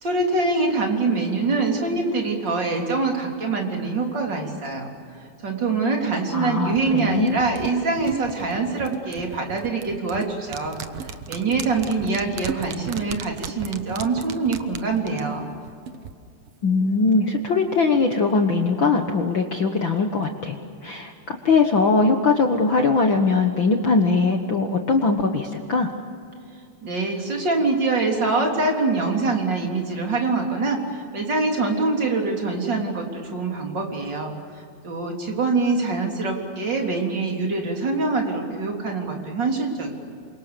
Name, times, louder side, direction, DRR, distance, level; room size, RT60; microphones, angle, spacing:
voice 1, 0.0-4.9 5.4-15.5 26.8-34.3 34.8-39.9, right 3 dB, 30° right, 1 dB, 3.9 m, -24 dB
voice 2, 6.3-7.3 16.6-20.6 20.8-25.9, left 4 dB, 60° left, 4 dB, 1.3 m, -21 dB
sound 1, 6.7-16.1 16.4-16.5, right 7 dB, 75° right, 1.3 m, -36 dB
28.5 x 25.5 x 6.9 m, 2.4 s
omnidirectional pair, 4.2 m